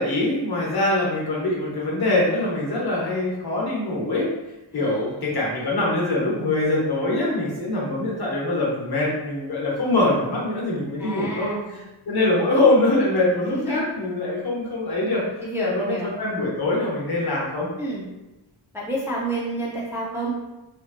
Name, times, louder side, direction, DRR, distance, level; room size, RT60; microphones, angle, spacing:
voice 1, 0.0-4.3 4.7-15.2 15.6-17.7, left 2 dB, 55° left, -4 dB, 1.0 m, -23 dB
voice 2, 11.0-11.7 13.5-13.8 15.4-16.1 17.8-18.1 18.7-20.3, right 2 dB, 5° right, -5 dB, 0.4 m, -29 dB
2.9 x 2.5 x 2.4 m, 1.0 s
wide cardioid pair, 120°, 45 cm